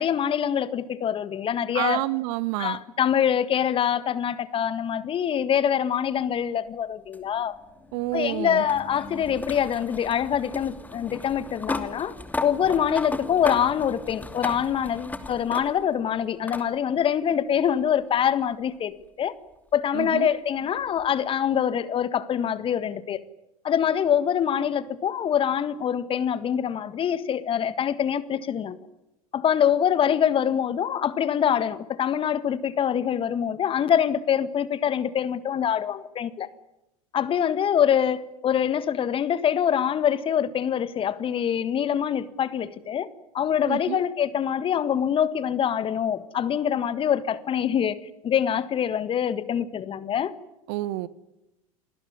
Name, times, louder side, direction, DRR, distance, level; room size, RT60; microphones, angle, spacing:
voice 1, 0.0-2.0 2.6-7.5 8.1-12.1 12.4-19.3 19.7-23.2 23.6-28.8 29.3-36.5 37.1-43.1 43.3-48.0 48.2-50.3, left 9 dB, 30° left, 15 dB, 1.6 m, -24 dB
voice 2, 1.7-2.8 7.9-8.6 19.9-20.3 43.7-44.0 50.7-51.1, right 18 dB, 50° right, 18 dB, 1.2 m, -28 dB
sound 1, 7.1-16.0 16.5-16.7 18.0-18.1 21.0-21.1, left 2 dB, 10° left, 2.8 m, -36 dB
28.0 x 20.0 x 9.8 m, 0.91 s
figure-of-eight pair, 80°, 18 cm